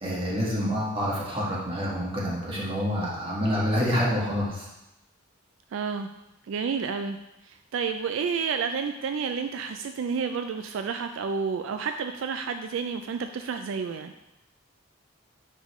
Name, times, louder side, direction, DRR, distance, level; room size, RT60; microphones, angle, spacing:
voice 1, 0.0-4.6, equal, 25° right, -6 dB, 1.6 m, -27 dB
voice 2, 5.7-6.1 6.5-7.2 7.4-14.1, right 5 dB, 70° right, 7 dB, 0.3 m, -30 dB
9.7 x 3.7 x 3.1 m, 0.92 s
head